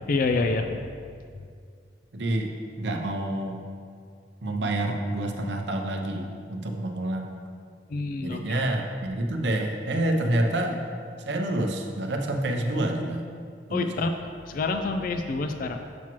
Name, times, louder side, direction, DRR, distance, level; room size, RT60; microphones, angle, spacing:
voice 1, 0.0-0.9 1.3-1.4 7.9-8.6 13.7-14.1 14.5-15.8, left 3 dB, 50° left, 6 dB, 0.3 m, -27 dB
voice 2, 2.1-2.5 2.8-3.6 4.4-7.4 8.2-10.8 11.3-13.2 13.7-14.1, right 1 dB, 75° right, 3 dB, 0.7 m, -28 dB
7.2 x 6.0 x 3.0 m, 2.2 s
head